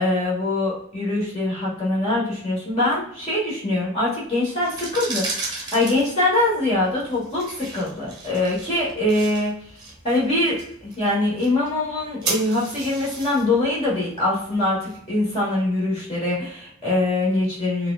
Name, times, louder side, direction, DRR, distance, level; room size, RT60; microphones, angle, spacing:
voice 1, 0.0-9.5 10.0-17.9, left 2 dB, 30° left, -6 dB, 1.5 m, -23 dB
sound 1, 4.5-15.4, right 3 dB, 20° right, 0.9 m, -35 dB
4.6 x 2.4 x 2.5 m, 0.65 s
head